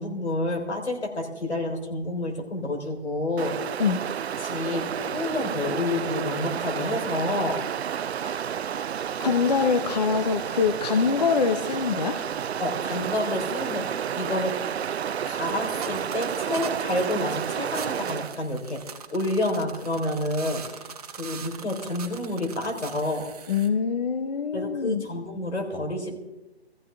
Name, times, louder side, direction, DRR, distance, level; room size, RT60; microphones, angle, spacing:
voice 1, 0.0-3.6 4.4-7.6 12.6-14.6 15.3-18.8 19.1-20.6 21.1-23.3 24.5-26.2, left 1 dB, 85° left, 2 dB, 3.9 m, -29 dB
Stream, 3.4-18.4, right 8 dB, 75° right, 0.5 m, -31 dB
voice 2, 8.2-8.5 9.2-12.2 23.5-25.1, left 5 dB, 40° left, 9 dB, 0.7 m, -24 dB
sound 1, 15.4-23.7, right 6 dB, 35° right, 1.1 m, -42 dB
20.5 x 14.5 x 3.4 m, 1.0 s
hypercardioid pair, 160°, 32 cm